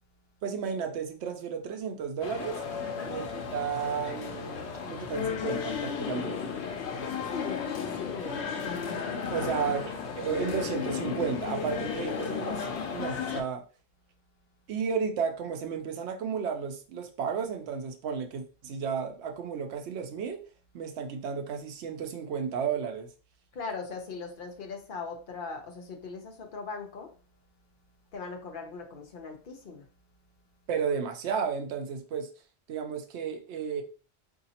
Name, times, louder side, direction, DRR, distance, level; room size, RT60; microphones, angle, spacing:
voice 1, 0.4-2.6 3.1-6.6 9.3-12.7 12.9-13.6 14.7-20.4 20.7-23.1 30.7-32.3 32.7-33.8, right 6 dB, 90° right, 0.9 m, -33 dB
sound 1, 2.2-13.4, left 6 dB, 90° left, 0.9 m, -34 dB
voice 2, 2.8-3.2 7.0-8.4 9.5-9.6 23.5-27.1 28.1-29.9, left 4 dB, 55° left, 0.8 m, -39 dB
3.9 x 2.7 x 2.8 m
omnidirectional pair, 1.1 m